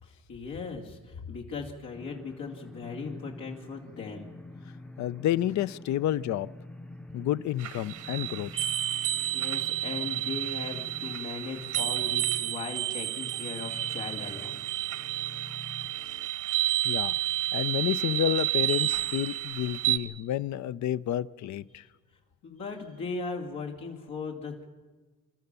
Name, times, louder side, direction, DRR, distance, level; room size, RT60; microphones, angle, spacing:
voice 1, 0.0-4.3 9.0-14.6 21.8-21.9 22.4-24.7, left 4 dB, 85° left, 2.8 m, -38 dB
sound 1, 1.9-16.3, left 1 dB, 5° left, 0.6 m, -47 dB
voice 2, 5.0-6.5 7.1-8.5 16.8-17.1 17.5-21.8, left 12 dB, 70° left, 0.6 m, -30 dB
sound 2, 7.6-20.0, right 15 dB, 75° right, 1.2 m, -30 dB
28.5 x 13.0 x 6.9 m
cardioid pair, 90°, 30 cm